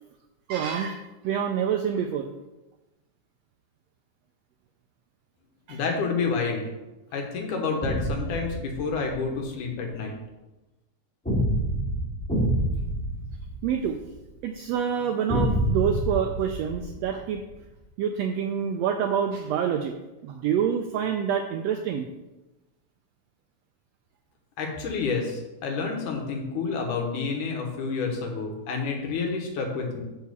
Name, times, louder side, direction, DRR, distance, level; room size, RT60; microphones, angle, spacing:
voice 1, 0.5-2.3 5.7-5.8 13.6-14.0 14.4-17.4 18.0-19.9 20.2-22.1, right 8 dB, 85° right, 5 dB, 1.4 m, -27 dB
voice 2, 5.7-6.7 7.1-10.1 24.6-30.0, left 4 dB, 90° left, 2 dB, 2.8 m, -29 dB
sound 1, 7.8-9.2 11.3-14.2 15.3-17.4, right 1 dB, 5° left, 1.7 m, -27 dB
6.4 x 5.8 x 6.8 m, 1.1 s
omnidirectional pair, 3.5 m